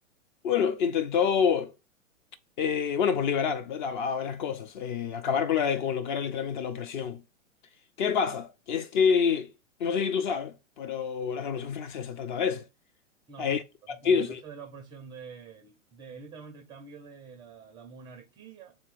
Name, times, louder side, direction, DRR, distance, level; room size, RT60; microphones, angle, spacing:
voice 1, 0.4-1.7 2.6-7.2 8.0-9.5 9.8-12.6 13.4-13.6 13.9-14.4, left 7 dB, 40° left, 0.5 m, -27 dB
voice 2, 13.3-18.8, right 5 dB, 10° right, 0.4 m, -47 dB
3.4 x 2.8 x 4.7 m
hypercardioid pair, 110°, 40 cm